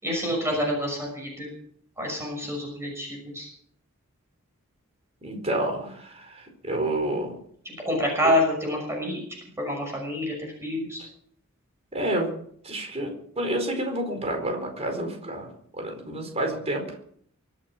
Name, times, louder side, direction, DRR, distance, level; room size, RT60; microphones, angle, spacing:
voice 1, 0.0-1.5 2.0-3.5 7.6-9.2 9.6-11.0, left 1 dB, 15° right, 0 dB, 6.2 m, -27 dB
voice 2, 5.2-7.4 11.9-12.3 12.6-15.5 15.8-16.9, right 1 dB, 30° right, 3 dB, 4.6 m, -29 dB
24.5 x 8.8 x 6.2 m, 0.63 s
head